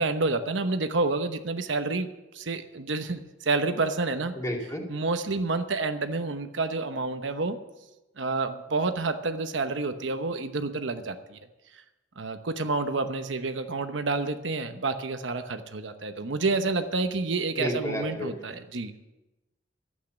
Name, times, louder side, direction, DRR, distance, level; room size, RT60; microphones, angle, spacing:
voice 1, 0.0-2.1 2.3-4.3 4.9-7.6 8.2-11.4 12.2-18.9, right 3 dB, 80° right, 8 dB, 1.0 m, -29 dB
voice 2, 4.3-4.8 17.6-18.6, equal, 15° left, 0 dB, 2.4 m, -31 dB
12.0 x 8.5 x 8.6 m, 1.0 s
head